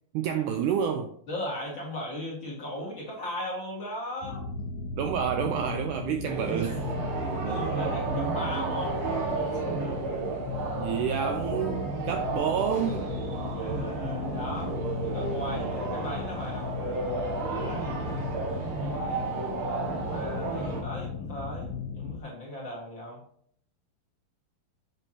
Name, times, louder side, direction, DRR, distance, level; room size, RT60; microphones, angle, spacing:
voice 1, 0.1-1.1 5.0-6.9 10.8-13.1, right 8 dB, 85° right, 1.8 m, -29 dB
voice 2, 1.3-4.4 7.3-9.0 9.5-10.0 10.3-10.4 13.5-14.8 15.0-16.7 17.5-19.3 20.1-23.2, equal, 45° left, 1.6 m, -38 dB
sound 1, 4.2-22.2, left 4 dB, 80° left, 2.4 m, -36 dB
sound 2, 6.3-20.8, right 4 dB, 55° right, 1.6 m, -32 dB
7.3 x 6.6 x 2.8 m
omnidirectional pair, 4.1 m